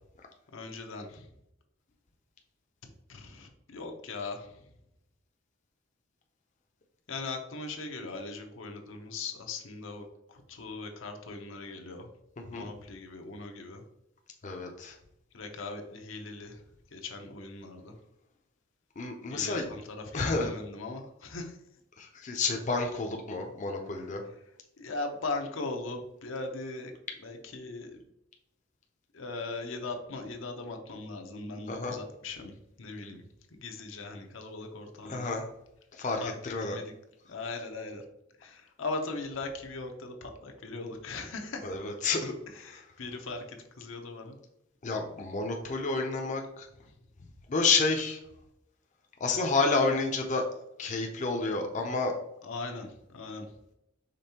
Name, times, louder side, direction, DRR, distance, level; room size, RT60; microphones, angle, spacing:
voice 1, 0.5-1.1 3.2-4.4 7.1-10.0 10.6-12.0 12.5-13.8 15.3-16.5 16.9-17.9 19.3-19.6 20.1-21.4 24.8-26.9 27.2-27.9 29.2-32.5 32.8-33.2 33.6-35.3 36.2-36.3 36.6-36.8 37.3-38.0 38.8-41.6 43.0-43.4 43.8-44.3 52.5-52.9 53.1-53.5, left 3 dB, 80° left, 4 dB, 0.7 m, -39 dB
voice 2, 12.4-12.7 14.4-15.0 19.0-19.7 20.1-20.5 22.0-24.2 31.7-32.0 35.0-35.5 35.9-36.8 37.4-37.5 41.6-42.8 44.8-46.7 47.5-48.2 49.2-50.4 50.8-52.1, left 3 dB, 40° left, 2 dB, 0.5 m, -30 dB
5.2 x 3.5 x 2.8 m, 0.80 s
head